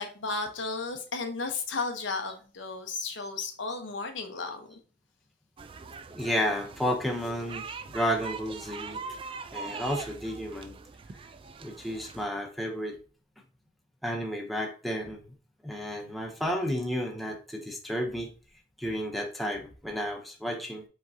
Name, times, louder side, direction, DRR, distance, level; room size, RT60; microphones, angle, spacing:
voice 1, 0.0-4.7, left 3 dB, 80° left, 4 dB, 1.0 m, -34 dB
sound 1, 5.6-12.3, right 4 dB, 30° right, 0.3 m, -42 dB
voice 2, 6.1-9.0 9.5-10.7 11.6-13.0 14.0-15.3 15.6-18.3 18.8-20.8, equal, ahead, 0 dB, 0.7 m, -32 dB
5.0 x 3.8 x 2.7 m, 0.38 s
head